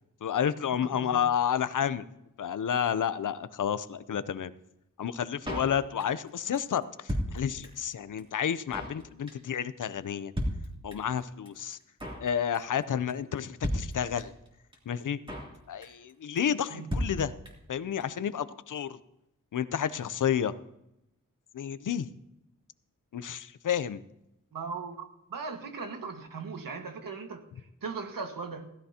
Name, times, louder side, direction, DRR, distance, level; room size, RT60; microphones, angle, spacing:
voice 1, 0.2-2.1 2.4-4.5 5.0-10.3 10.8-11.8 12.2-14.3 14.9-15.2 15.7-17.3 17.7-19.0 19.5-20.5 21.5-22.1 23.1-24.0, left 8 dB, 70° left, 15 dB, 0.6 m, -30 dB
voice 2, 0.9-1.3 16.7-16.8 24.5-27.4 27.8-28.7, right 5 dB, 85° right, 5 dB, 1.6 m, -38 dB
Drum kit, 5.5-6.3 6.5-6.6 6.8-7.9 8.2-8.3 8.5-9.0 9.3-9.6 9.8-9.9 10.1-10.2 10.4-11.2 11.5-11.6 11.7-12.3 12.5-12.8 13.1-13.2 13.4-13.5 13.6-14.5 14.7-14.8 15.0-15.6 15.8-16.1 16.4-16.5 16.6-16.7 16.9-17.7 18.0-18.1 18.3-18.4, equal, 15° right, 2.8 m, -34 dB
16.0 x 15.0 x 2.8 m, 0.86 s
wide cardioid pair, 155°, 33 cm